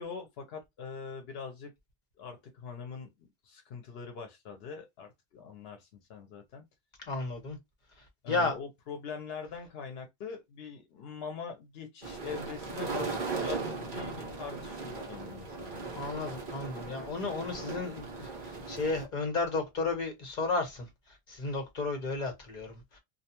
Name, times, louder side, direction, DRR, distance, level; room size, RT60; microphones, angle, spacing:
voice 1, 0.0-1.7 2.2-6.6 8.2-16.0, left 5 dB, 80° left, 0.8 m, -43 dB
voice 2, 7.1-7.6 8.3-8.6 15.9-20.9 21.3-23.0, left 3 dB, 50° left, 1.1 m, -33 dB
sound 1, 12.0-19.1, right 3 dB, 50° right, 1.0 m, -38 dB
2.6 x 2.2 x 2.8 m
omnidirectional pair, 1.0 m